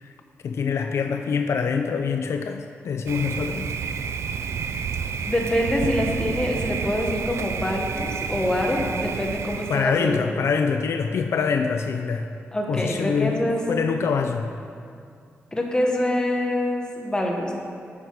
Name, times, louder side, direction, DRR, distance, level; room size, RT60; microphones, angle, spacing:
voice 1, 0.4-3.7 9.7-12.3 12.7-14.5, left 5 dB, 75° left, 6 dB, 0.4 m, -25 dB
Thunder, 3.1-9.8, right 6 dB, 75° right, 0.4 m, -30 dB
voice 2, 5.3-10.2 12.5-13.6 15.5-17.5, left 1 dB, 15° left, 0 dB, 1.3 m, -25 dB
9.6 x 6.8 x 4.7 m, 2.4 s
wide cardioid pair, 105°, 5 cm